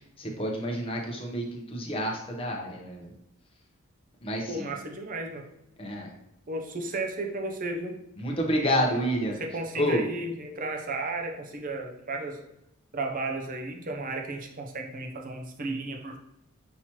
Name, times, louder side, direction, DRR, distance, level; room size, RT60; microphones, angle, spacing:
voice 1, 0.2-3.1 4.2-4.7 5.8-6.1 8.2-9.4 9.7-10.0, equal, 25° left, 0 dB, 0.8 m, -29 dB
voice 2, 4.5-5.4 6.5-7.9 8.8-9.1 9.3-12.5 12.9-16.2, right 2 dB, 40° right, 2 dB, 0.6 m, -34 dB
5.7 x 3.0 x 2.9 m, 0.82 s
head